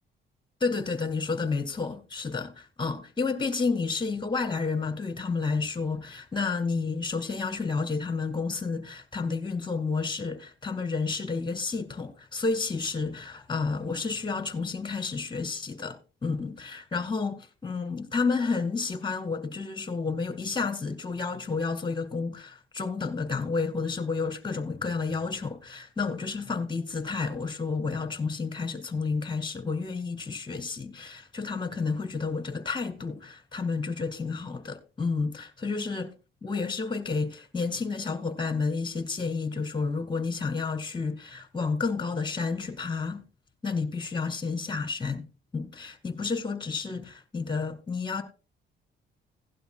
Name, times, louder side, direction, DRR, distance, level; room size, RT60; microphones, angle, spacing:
voice 1, 0.6-36.1 36.4-43.2 43.6-45.3 45.5-48.2, left 4 dB, 25° left, 2.2 m, -30 dB
17.0 x 11.5 x 2.2 m
cardioid pair, 90°, 20 cm